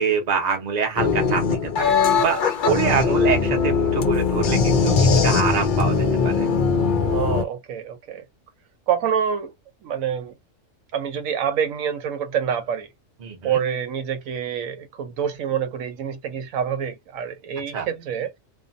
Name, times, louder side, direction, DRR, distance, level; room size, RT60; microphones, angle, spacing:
voice 1, 0.0-6.0 6.2-6.5 13.2-13.6 17.7-17.9, right 6 dB, 40° right, 0.7 m, -25 dB
sound 1, 1.0-7.4, left 5 dB, 60° left, 0.5 m, -20 dB
voice 2, 7.1-8.2 8.9-9.5 9.8-10.4 10.9-12.9 13.4-18.3, right 8 dB, 90° right, 1.0 m, -26 dB
2.5 x 2.2 x 2.5 m
omnidirectional pair, 1.4 m